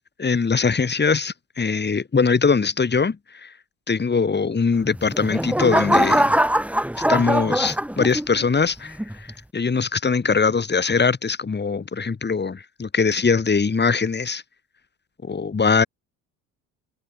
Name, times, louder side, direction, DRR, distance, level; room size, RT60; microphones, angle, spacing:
voice 1, 0.2-3.5 3.9-6.4 7.1-9.3 9.5-14.4 15.2-15.8, left 5 dB, 25° left, 2.7 m, -22 dB
sound 1, 4.9-8.4 9.0-9.3, right 1 dB, 5° right, 2.8 m, -21 dB
hypercardioid pair, 70°, 43 cm